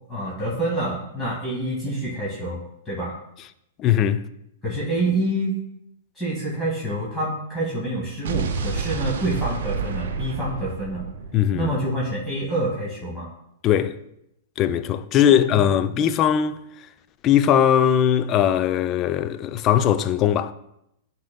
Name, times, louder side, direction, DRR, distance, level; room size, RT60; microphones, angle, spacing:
voice 1, 0.1-2.6 2.9-3.2 4.6-5.6 6.2-11.1 11.5-13.3 15.3-15.6, right 1 dB, 10° left, 1.9 m, -27 dB
voice 2, 3.8-4.3 11.3-11.7 13.6-14.0 14.6-16.9 17.2-20.5, left 10 dB, 30° left, 0.4 m, -20 dB
Explosion, 8.2-12.3, right 5 dB, 60° right, 0.6 m, -30 dB
10.5 x 4.3 x 2.3 m
figure-of-eight pair, 105°, 0 cm